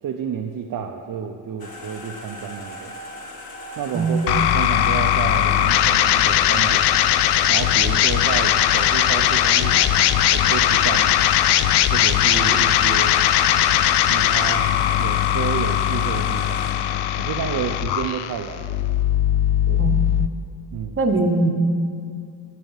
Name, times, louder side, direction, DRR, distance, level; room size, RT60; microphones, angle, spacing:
voice 1, 0.0-2.9 3.8-6.9 7.5-10.0 10.3-11.3 11.9-13.1 14.0-14.7 15.0-16.7 17.2-18.7 19.7-19.9 20.7-21.0, right 8 dB, 55° right, 3 dB, 0.7 m, -30 dB
sound 1, 1.6-16.7, left 3 dB, 65° left, 1.5 m, -37 dB
sound 2, 4.3-20.3, left 11 dB, 85° left, 0.5 m, -19 dB
voice 2, 21.0-21.5, right 3 dB, 30° right, 4 dB, 1.0 m, -20 dB
11.5 x 5.1 x 7.2 m, 2.3 s
cardioid pair, 90°, 39 cm